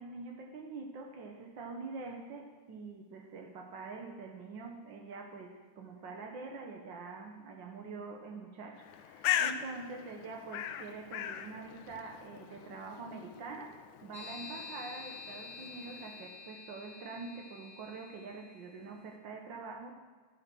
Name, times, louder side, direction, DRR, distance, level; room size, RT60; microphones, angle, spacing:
voice 1, 0.0-19.9, right 4 dB, 70° right, 2 dB, 1.1 m, -45 dB
Bird, 8.8-16.4, left 11 dB, 85° left, 2.1 m, -39 dB
sound 1, 14.1-18.8, left 4 dB, 70° left, 2.6 m, -49 dB
12.0 x 10.5 x 6.1 m, 1.5 s
omnidirectional pair, 3.4 m